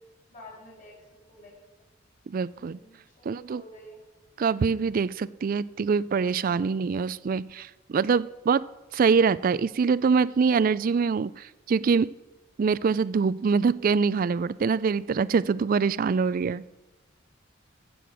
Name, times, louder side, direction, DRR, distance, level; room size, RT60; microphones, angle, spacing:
voice 1, 0.3-1.8 2.5-4.0, equal, 40° left, -3 dB, 5.7 m, -50 dB
voice 2, 2.3-2.8 3.3-3.6 4.4-8.6 8.9-12.1 12.6-16.6, right 5 dB, 45° right, 19 dB, 0.3 m, -24 dB
15.0 x 7.7 x 6.3 m, 1.1 s
head